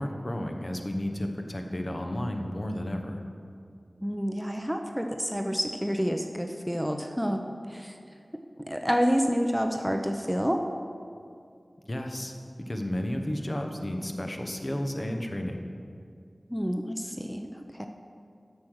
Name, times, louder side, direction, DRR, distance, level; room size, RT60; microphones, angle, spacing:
voice 1, 0.0-3.2 11.9-12.3 12.7-15.6, left 1 dB, 40° left, 4 dB, 0.9 m, -32 dB
voice 2, 4.0-8.0 8.7-10.6 16.5-17.9, equal, ahead, 4 dB, 0.6 m, -29 dB
8.1 x 6.4 x 6.3 m, 2.4 s
wide cardioid pair, 40°, 0 cm